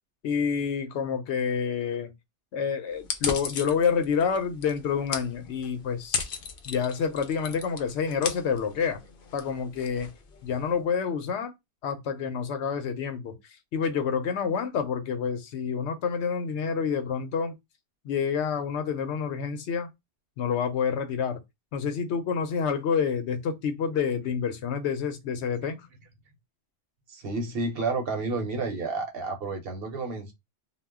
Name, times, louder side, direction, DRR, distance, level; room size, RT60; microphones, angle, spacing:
voice 1, 0.2-2.1 2.5-6.3 6.6-9.0 9.3-10.1 10.4-11.5 11.8-17.6 18.0-19.9 20.4-21.4 21.7-25.9, left 6 dB, 90° left, 0.9 m, -28 dB
sound 1, 3.0-10.7, left 6 dB, 60° left, 0.7 m, -37 dB
voice 2, 27.1-30.3, right 3 dB, 65° right, 0.9 m, -30 dB
2.2 x 2.1 x 3.4 m
omnidirectional pair, 1.1 m